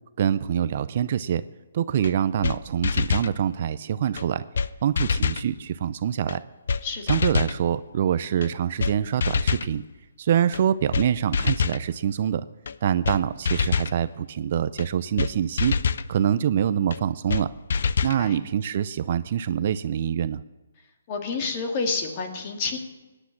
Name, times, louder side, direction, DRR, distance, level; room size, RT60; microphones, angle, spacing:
voice 1, 0.2-1.4 1.7-4.4 4.8-6.4 7.1-9.8 10.2-12.4 12.8-15.8 16.1-17.5 18.0-20.4, right 9 dB, 40° right, 14 dB, 0.5 m, -25 dB
sound 1, 2.0-2.1 2.4-2.6 2.8-3.3 4.2-4.3 4.6-4.7 5.0-5.5 6.3-6.4 6.7-6.8 7.1-7.6 8.4-8.5 8.8-8.9 9.2-9.7 10.5-10.6 10.9-11.1 11.3-11.8 12.7-12.8 13.0-13.2 13.5-13.9 14.8-14.9 15.2-15.3 15.6-16.1 16.9-17.0 17.3-17.4 17.7-18.2, left 5 dB, 60° left, 0.6 m, -25 dB
voice 2, 6.8-7.2 18.2-18.4 21.1-22.8, left 4 dB, 30° left, 3 dB, 2.2 m, -29 dB
18.0 x 10.0 x 7.2 m, 1.2 s
hypercardioid pair, 165°, 0 cm